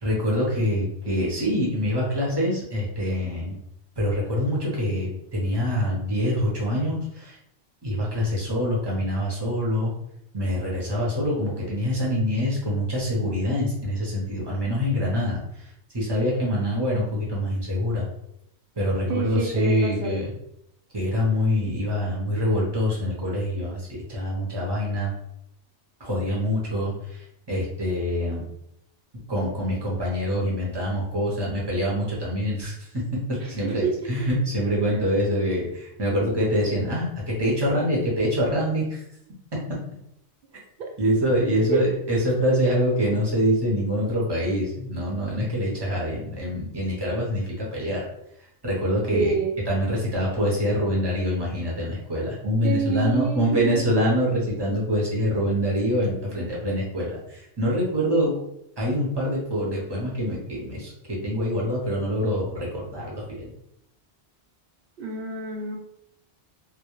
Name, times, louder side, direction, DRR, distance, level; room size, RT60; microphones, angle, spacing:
voice 1, 0.0-3.6 4.0-7.4 7.8-9.9 10.3-15.7 15.9-18.1 18.8-20.3 20.9-25.1 26.0-27.2 27.5-28.4 29.3-33.0 33.3-39.0 39.5-39.6 41.0-48.1 48.6-49.3 49.7-58.3 58.8-63.5, equal, 25° right, -4 dB, 0.6 m, -25 dB
voice 2, 19.1-20.2 33.4-33.9 36.1-36.2 40.8-40.9 41.7-41.8 49.1-49.6 52.6-53.9 65.0-65.8, right 4 dB, 60° right, 0 dB, 0.7 m, -27 dB
2.2 x 2.0 x 2.9 m, 0.77 s
omnidirectional pair, 1.1 m